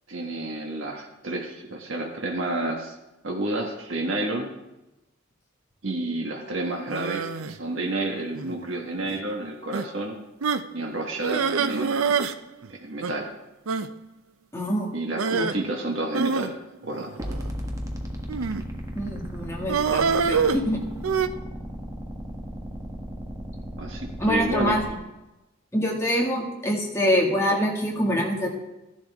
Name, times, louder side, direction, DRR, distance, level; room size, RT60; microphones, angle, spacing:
voice 1, 0.1-2.9 3.2-4.5 5.8-10.2 10.7-12.4 12.7-13.3 14.9-16.6 16.8-17.1 23.8-24.8, right 2 dB, 65° right, 1 dB, 1.4 m, -30 dB
sound 1, 6.9-7.6 8.4-8.7 9.1-9.2 9.7-9.9 10.4-10.7 11.2-12.4 12.6-12.7 13.0-13.1 13.7-13.9 15.2-15.6 16.1-17.5 18.3-18.7 19.7-21.3, right 5 dB, 80° right, 0.5 m, -26 dB
voice 2, 14.5-14.9 15.4-15.5 19.0-20.8 24.2-24.8 25.7-28.6, equal, 15° left, -2 dB, 2.0 m, -25 dB
sound 2, 17.2-24.9, equal, 15° right, 1.2 m, -35 dB
14.0 x 11.0 x 3.5 m, 0.98 s
head